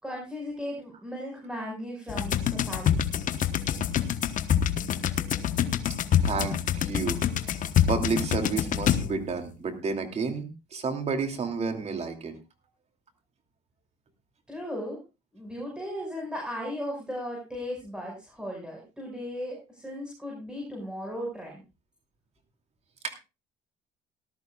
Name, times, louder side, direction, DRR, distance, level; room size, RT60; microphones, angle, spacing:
voice 1, 0.0-3.1 14.5-15.0 15.3-21.6, equal, 5° right, -1 dB, 5.7 m, -36 dB
sound 1, 2.1-9.4, left 9 dB, 50° left, 1.1 m, -26 dB
voice 2, 6.2-12.4 23.0-23.2, right 4 dB, 40° right, 6 dB, 2.8 m, -31 dB
18.5 x 13.0 x 2.4 m, 0.27 s
cardioid pair, 110°, 17 cm